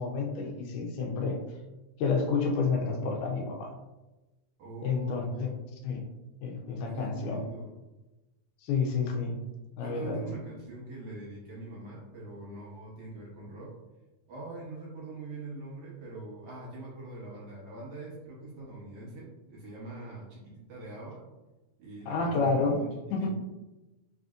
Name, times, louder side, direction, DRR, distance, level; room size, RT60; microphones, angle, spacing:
voice 1, 0.0-1.4 2.0-3.7 4.8-5.5 5.8-6.0 6.4-7.4 8.6-9.4 9.8-10.2 22.1-22.8 23.1-23.3, left 4 dB, 85° left, 2 dB, 2.1 m, -29 dB
voice 2, 4.6-5.6 6.9-7.7 9.8-13.7 14.3-21.2 21.8-23.3, right 2 dB, 65° right, -5 dB, 1.7 m, -43 dB
4.3 x 3.9 x 2.4 m, 1.1 s
omnidirectional pair, 3.5 m